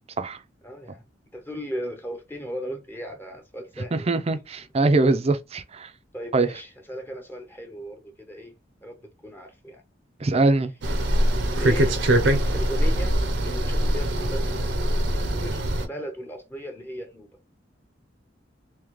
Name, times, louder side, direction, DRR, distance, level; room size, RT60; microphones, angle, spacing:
voice 1, 0.6-1.0 1.3-4.1 6.1-8.5 8.8-9.8 11.6-12.0 12.5-13.2 13.4-14.6 15.3-17.3, equal, 10° left, 0.7 m, -36 dB
voice 2, 3.9-5.9 6.3-6.5 10.2-10.7, right 2 dB, 35° right, 0.5 m, -22 dB
sound 1, 10.8-15.9, right 1 dB, 80° right, 0.8 m, -23 dB
3.6 x 2.8 x 3.1 m
head